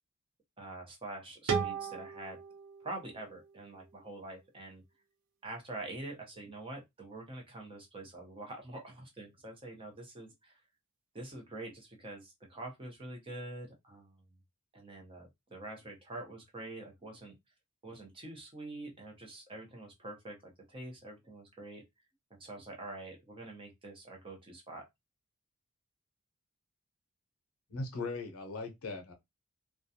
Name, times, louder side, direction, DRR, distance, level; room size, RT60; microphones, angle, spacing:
voice 1, 0.6-2.4 2.8-4.8 5.4-10.6 11.1-14.2 14.7-17.3 17.8-21.8 22.3-24.8, right 2 dB, 25° right, 0.7 m, -45 dB
sound 1, 1.5-4.3, right 6 dB, 70° right, 0.6 m, -37 dB
voice 2, 27.7-29.1, left 3 dB, 75° left, 0.6 m, -39 dB
2.3 x 2.2 x 2.7 m
head